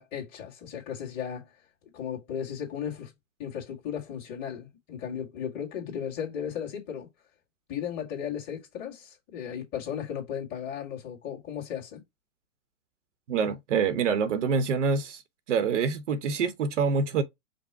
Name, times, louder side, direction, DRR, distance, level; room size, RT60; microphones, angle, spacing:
voice 1, 0.0-1.6 1.9-3.1 3.4-7.1 7.7-12.0, left 8 dB, 25° left, 1.8 m, -35 dB
voice 2, 13.3-15.2 15.5-17.2, right 5 dB, 60° right, 0.9 m, -26 dB
5.2 x 2.1 x 4.6 m
hypercardioid pair, 155°, 41 cm